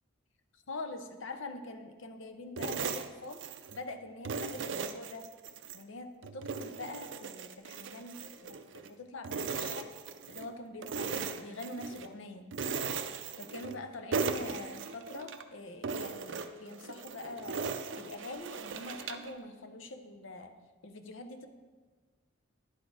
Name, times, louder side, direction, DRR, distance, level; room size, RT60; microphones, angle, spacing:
voice 1, 0.5-3.4 3.7-5.3 5.7-9.9 10.3-12.5 13.4-17.6 18.0-20.6 20.8-21.5, left 2 dB, 70° left, 7 dB, 0.7 m, -44 dB
sound 1, 2.6-3.8 4.3-5.8 6.2-8.9 9.2-10.5 10.8-12.1 12.5-13.8 14.1-15.4 15.8-19.3, right 5 dB, 65° right, 0.4 m, -38 dB
10.5 x 4.2 x 4.8 m, 1.4 s
head